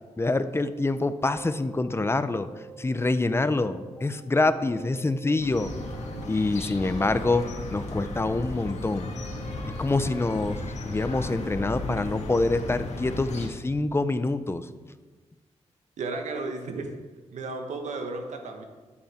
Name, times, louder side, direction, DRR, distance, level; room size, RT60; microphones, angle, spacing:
voice 1, 0.2-2.5 2.8-5.7 6.3-9.1 9.8-14.6, left 2 dB, 20° left, 11 dB, 0.7 m, -26 dB
sound 1, 1.2-3.1 3.4-5.3 5.6-7.5 7.8-9.7 10.0-11.9, right 6 dB, 5° right, 2.9 m, -49 dB
sound 2, 5.4-13.5, left 2 dB, 70° left, 1.8 m, -35 dB
voice 2, 16.0-16.9 17.3-18.6, right 3 dB, 75° right, 4 dB, 1.3 m, -34 dB
11.5 x 8.5 x 4.4 m, 1.3 s
cardioid pair, 80°, 12 cm